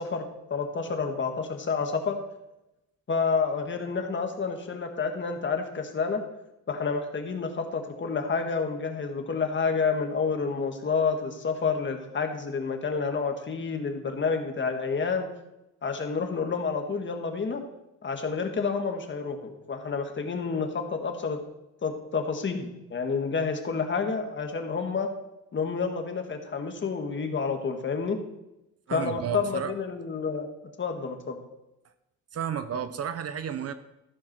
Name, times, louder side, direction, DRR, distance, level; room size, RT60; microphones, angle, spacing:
voice 1, 0.0-2.2 3.1-6.2 6.7-15.3 15.8-17.6 18.0-21.4 21.8-25.1 25.5-28.2 28.9-30.5 30.8-31.4, left 5 dB, 40° left, 5 dB, 1.6 m, -29 dB
voice 2, 28.9-29.7 32.3-33.7, right 8 dB, 55° right, 11 dB, 0.9 m, -32 dB
14.0 x 4.8 x 6.0 m, 0.91 s
cardioid pair, 90°, 30 cm